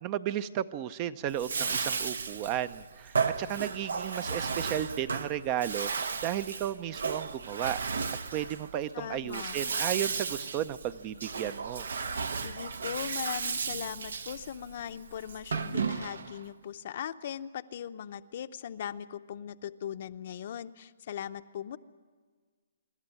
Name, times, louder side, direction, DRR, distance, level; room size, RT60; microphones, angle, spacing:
voice 1, 0.0-7.8 8.3-11.9, right 11 dB, 30° right, 16 dB, 0.5 m, -34 dB
Bathtub (filling or washing), 1.3-16.4, right 5 dB, 85° right, 1.0 m, -34 dB
voice 2, 8.9-9.6 12.4-21.8, left 9 dB, 50° left, 11 dB, 0.7 m, -39 dB
25.5 x 12.0 x 9.8 m, 1.5 s
hypercardioid pair, 155°, 0 cm